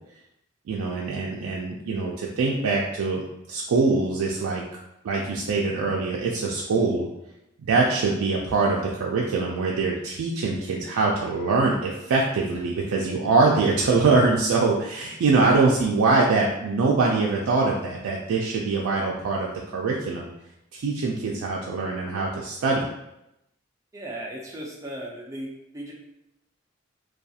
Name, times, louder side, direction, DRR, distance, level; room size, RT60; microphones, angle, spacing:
voice 1, 0.7-4.6 5.0-7.1 7.7-20.3 20.7-22.8, right 3 dB, 85° right, -2 dB, 0.3 m, -23 dB
voice 2, 23.9-25.5 25.7-25.9, right 1 dB, 15° right, -2 dB, 0.4 m, -36 dB
2.3 x 2.3 x 2.7 m, 0.86 s
head